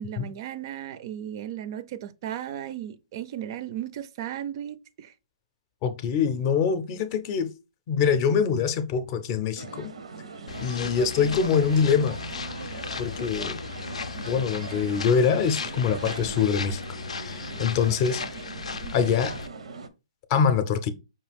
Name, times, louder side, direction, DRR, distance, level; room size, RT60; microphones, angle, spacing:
voice 1, 0.0-5.1 18.8-18.9, right 10 dB, 45° right, 0.4 m, -35 dB
voice 2, 5.8-7.5 7.9-9.9 10.6-12.2 12.6-13.6 14.3-16.8 17.2-18.2 18.9-19.3 20.3-20.9, left 6 dB, 35° left, 0.6 m, -24 dB
sound 1, 9.6-19.9, right 4 dB, 80° right, 0.6 m, -40 dB
sound 2, 10.5-19.5, left 5 dB, 85° left, 0.5 m, -36 dB
5.4 x 2.4 x 3.4 m
hypercardioid pair, 140°, 3 cm